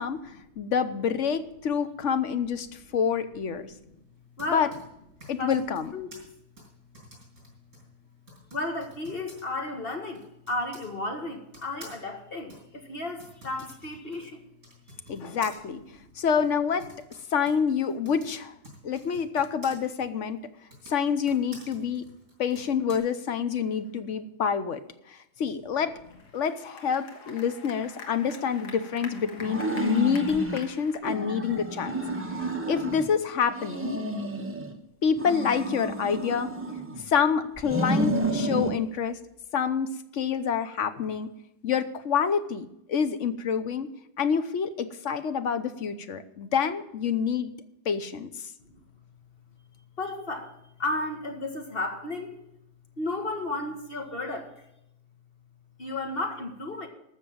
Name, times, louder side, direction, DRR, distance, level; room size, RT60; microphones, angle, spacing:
voice 1, 0.0-2.7 2.9-3.7 4.5-4.7 5.3-5.9 15.1-15.8 16.2-16.9 17.3-18.5 18.8-20.4 20.9-22.0 22.4-24.8 25.1-25.9 26.3-32.0 32.7-34.0 35.0-36.5 37.1-39.2 39.5-41.3 41.6-43.9 44.2-47.5 47.8-48.5, left 7 dB, 55° left, 10 dB, 1.1 m, -27 dB
voice 2, 3.7-4.1 4.4-4.7 5.3-5.6 5.9-6.1 8.5-14.4 15.0-15.2 16.0-16.1 48.6-48.8 50.0-50.5 50.8-52.4 53.0-54.6 55.8-56.9, left 2 dB, 35° left, 3 dB, 1.9 m, -33 dB
Typing, 4.1-10.9 11.5-19.8 20.6-23.0, right 1 dB, 50° right, 6.5 m, -51 dB
sound 1, 26.1-31.0, left 4 dB, 80° left, 2.1 m, -46 dB
sound 2, 29.4-30.6 31.0-33.1 33.5-34.7 35.2-37.1 37.6-38.8, right 1 dB, 10° right, 1.1 m, -30 dB
13.0 x 6.6 x 8.7 m, 0.81 s
omnidirectional pair, 1.8 m